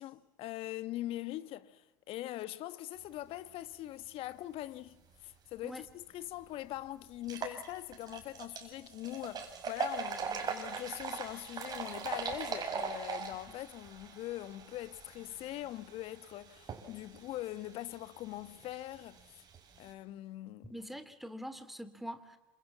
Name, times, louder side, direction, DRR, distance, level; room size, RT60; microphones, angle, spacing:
voice 1, 0.0-19.2 19.8-20.8, left 15 dB, 55° left, 1.4 m, -42 dB
sound 1, 5.9-6.0 6.4-6.5 7.1-19.9, right 6 dB, 35° right, 6.7 m, -42 dB
voice 2, 20.7-22.4, equal, ahead, 3.0 m, -44 dB
29.0 x 27.0 x 7.5 m
hypercardioid pair, 75°, 12 cm